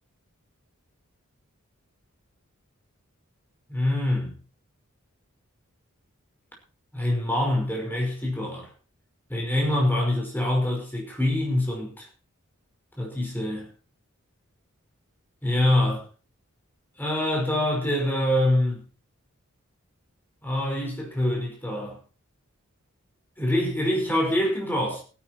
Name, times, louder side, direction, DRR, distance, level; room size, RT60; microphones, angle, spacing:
voice 1, 3.7-4.3 6.9-8.7 9.3-12.1 13.0-13.7 15.4-16.0 17.0-18.8 20.4-22.0 23.4-25.0, left 1 dB, 10° left, 5.5 m, -25 dB
16.5 x 11.0 x 4.6 m
head